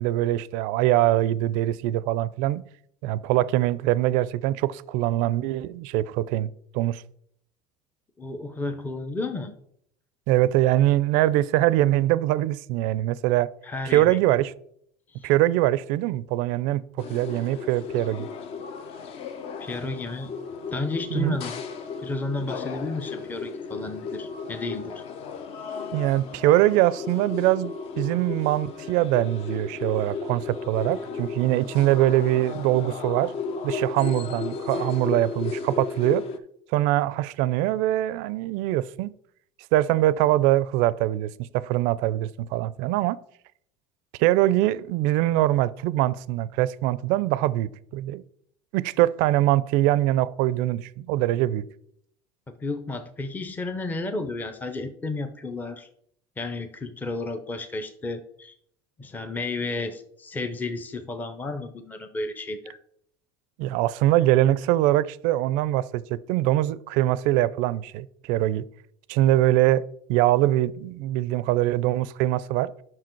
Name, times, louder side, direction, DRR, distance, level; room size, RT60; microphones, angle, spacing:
voice 1, 0.0-2.6 3.0-6.5 6.7-7.0 10.3-13.5 13.9-14.5 15.2-16.8 17.1-18.3 21.1-21.4 25.9-33.3 33.6-36.2 36.7-39.1 39.7-43.2 44.2-48.2 48.7-51.6 63.6-68.6 69.1-69.8 70.1-72.7, right 14 dB, 70° right, 0.4 m, -23 dB
voice 2, 8.2-9.6 13.6-14.2 15.1-15.3 19.6-20.3 20.7-21.5 22.0-25.0 52.6-55.9 56.4-58.5 59.0-62.8, left 2 dB, 10° left, 0.6 m, -32 dB
sound 1, 17.0-36.4, left 5 dB, 45° left, 0.8 m, -35 dB
7.6 x 5.9 x 4.5 m
cardioid pair, 140°, 14 cm